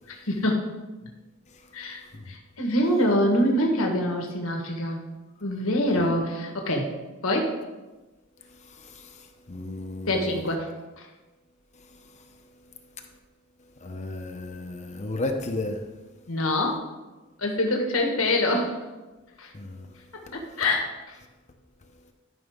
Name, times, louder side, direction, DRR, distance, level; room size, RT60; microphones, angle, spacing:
voice 1, 0.1-0.6 1.0-1.1 1.7-5.0 5.4-6.9 7.2-7.5 10.1-10.7 11.0-11.1 16.3-16.8 17.4-18.8 19.4-19.5 20.3-21.2, left 1 dB, 80° left, 1.6 m, -25 dB
voice 2, 8.6-10.4 13.8-15.8 19.5-19.9 20.3-20.4, left 2 dB, 35° left, 0.8 m, -34 dB
13.0 x 5.9 x 3.6 m
head